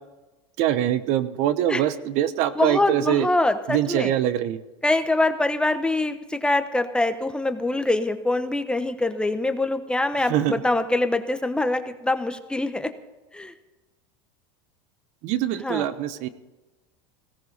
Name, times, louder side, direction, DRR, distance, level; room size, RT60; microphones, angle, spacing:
voice 1, 0.6-3.3 3.7-4.6 10.2-10.6 15.2-16.3, right 11 dB, 60° right, 13 dB, 1.0 m, -23 dB
voice 2, 2.6-4.1 4.8-12.9 13.3-13.5 15.6-15.9, left 2 dB, 5° left, 8 dB, 1.0 m, -24 dB
17.0 x 15.5 x 4.1 m, 1.1 s
supercardioid pair, 120°, 14 cm